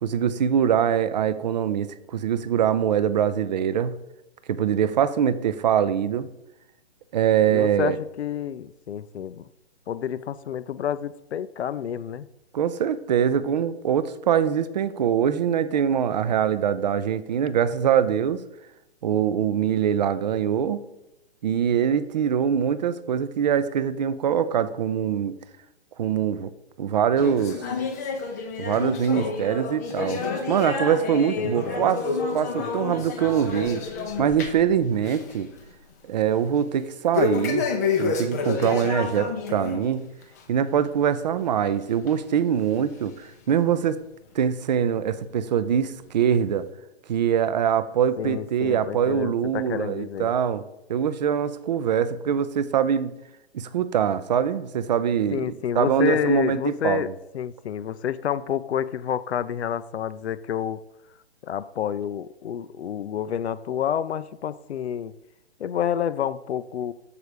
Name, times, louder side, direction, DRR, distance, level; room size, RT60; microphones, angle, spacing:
voice 1, 0.0-3.9 4.5-6.3 7.1-8.0 12.5-18.4 19.0-20.8 21.4-25.4 26.0-26.5 26.8-27.6 28.6-30.2 30.5-32.0 32.3-33.8 34.2-35.5 36.1-37.7 38.0-40.0 40.5-44.0 44.3-46.6 47.1-50.6 50.9-53.1 53.5-57.0, right 8 dB, 45° right, 14 dB, 0.4 m, -23 dB
voice 2, 7.5-9.5 9.9-12.3 31.4-31.8 48.2-50.3 55.3-57.1 57.3-60.8 61.4-65.1 65.6-66.9, left 9 dB, 80° left, 16 dB, 0.5 m, -29 dB
sound 1, 27.2-34.7 35.0-35.4 35.7-35.8 37.1-39.8 40.2-40.4 41.1-41.2 42.1-42.2 42.9-43.0, left 4 dB, 15° left, 0.4 m, -29 dB
6.7 x 4.8 x 4.9 m, 0.91 s
hypercardioid pair, 145°, 32 cm